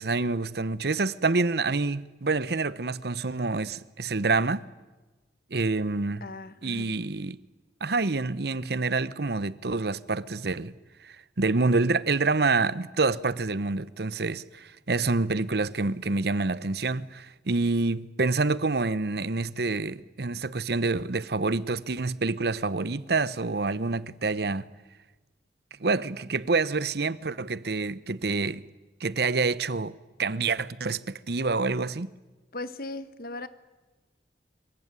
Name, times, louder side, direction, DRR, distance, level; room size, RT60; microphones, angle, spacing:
voice 1, 0.0-4.6 5.5-6.2 6.6-7.4 7.8-10.7 11.0-24.7 25.8-28.6 29.0-32.1, right 3 dB, 65° right, 0.9 m, -27 dB
voice 2, 6.2-7.0 32.5-33.5, left 2 dB, 55° left, 1.4 m, -38 dB
26.0 x 23.0 x 9.7 m
head